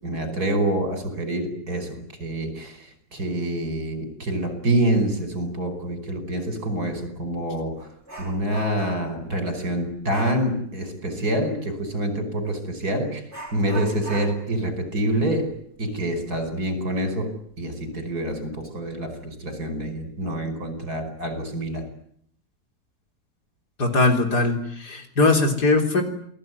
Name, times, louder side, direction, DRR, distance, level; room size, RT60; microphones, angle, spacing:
voice 1, 0.0-7.9 8.2-13.2 13.5-15.5 15.8-21.9, right 1 dB, 60° right, 8 dB, 5.9 m, -26 dB
Dog, 6.7-6.9 7.3-9.2 10.1-10.5 12.4-12.6 13.3-16.6 16.9-17.0 17.5-17.6 18.3-18.7 19.1-19.3, right 1 dB, 40° right, 6.4 m, -41 dB
voice 2, 23.8-26.0, left 2 dB, 70° left, 4 dB, 4.3 m, -20 dB
28.5 x 19.0 x 9.6 m, 0.68 s
omnidirectional pair, 1.8 m